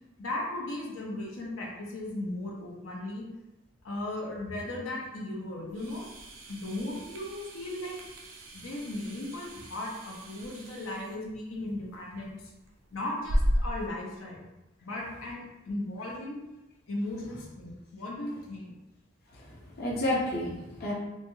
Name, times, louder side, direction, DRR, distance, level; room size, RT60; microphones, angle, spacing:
voice 1, 0.2-3.3 3.8-6.1 6.5-8.0 8.5-12.5 12.9-14.5 14.8-16.4 16.9-18.7, left 1 dB, 85° left, -2 dB, 0.7 m, -36 dB
sound 1, 5.7-13.9, equal, 75° right, 0.5 m, -35 dB
voice 2, 19.3-20.9, left 1 dB, 50° left, -5 dB, 0.6 m, -31 dB
3.1 x 2.2 x 2.7 m, 0.97 s
head